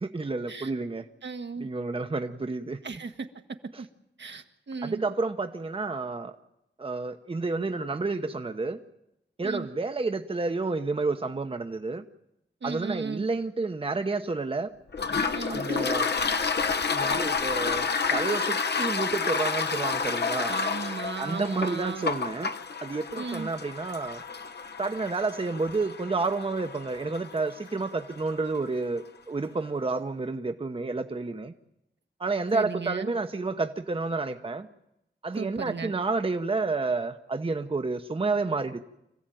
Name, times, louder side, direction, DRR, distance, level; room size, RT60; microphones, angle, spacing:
voice 1, 0.0-1.0 1.6-2.8 3.7-3.8 4.8-6.4 6.8-8.8 9.4-12.0 12.6-14.7 15.5-16.1 16.9-20.5 21.2-22.5 22.8-24.2 24.8-31.5 32.2-34.7 35.2-38.8, right 3 dB, 30° right, 7 dB, 0.9 m, -30 dB
voice 2, 1.2-1.7 2.8-3.3 3.8-3.9 4.2-5.0 9.4-9.7 12.6-13.3 15.3-15.6 20.5-22.1 23.1-23.5 32.5-33.1 35.4-35.9, right 5 dB, 70° right, 6 dB, 1.5 m, -35 dB
Toilet flush, 14.9-28.3, left 5 dB, 60° left, 1.1 m, -30 dB
26.0 x 15.5 x 9.2 m, 0.84 s
wide cardioid pair, 125°, 19 cm